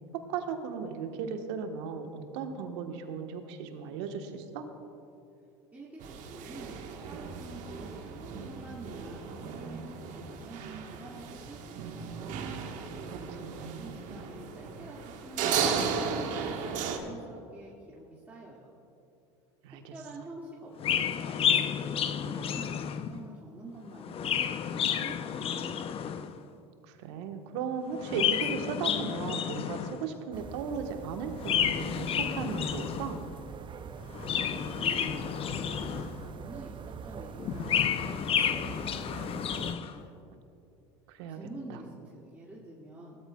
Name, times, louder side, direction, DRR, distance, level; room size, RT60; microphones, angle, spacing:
voice 1, 0.1-4.7 13.1-14.0 19.6-20.0 26.8-33.3 41.1-41.4 41.7-41.8, right 6 dB, 75° right, 5 dB, 1.3 m, -36 dB
voice 2, 5.7-6.7 7.0-12.3 13.2-16.4 16.9-18.7 19.9-25.7 34.2-40.2 41.3-43.2, right 2 dB, 10° right, -6 dB, 2.2 m, -48 dB
sound 1, 6.0-17.0, right 6 dB, 60° right, 1.4 m, -35 dB
Chirp tweet, 20.8-23.2 23.9-26.4 27.9-30.1 31.3-33.2 34.0-36.3 37.4-39.9, left 8 dB, 40° left, 0.6 m, -31 dB
sound 2, 30.3-39.7, right 7 dB, 35° right, 0.6 m, -44 dB
19.5 x 13.5 x 2.3 m, 2.7 s
hypercardioid pair, 85°, 15 cm